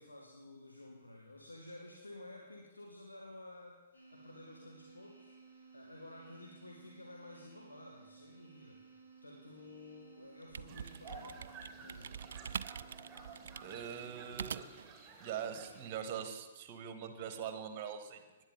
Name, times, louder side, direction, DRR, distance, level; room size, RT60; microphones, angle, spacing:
voice 1, 0.0-12.2, left 1 dB, 80° left, -1 dB, 1.7 m, -53 dB
sound 1, 3.9-14.2, right 5 dB, 60° left, 4.4 m, -59 dB
sound 2, 10.2-14.9, right 7 dB, 55° right, 0.3 m, -44 dB
sound 3, 10.7-15.9, right 3 dB, 15° right, 1.9 m, -53 dB
voice 2, 13.6-14.8 15.2-18.2, right 8 dB, 30° right, 9 dB, 1.4 m, -42 dB
18.5 x 10.0 x 4.0 m, 1.2 s
figure-of-eight pair, 120°, 0 cm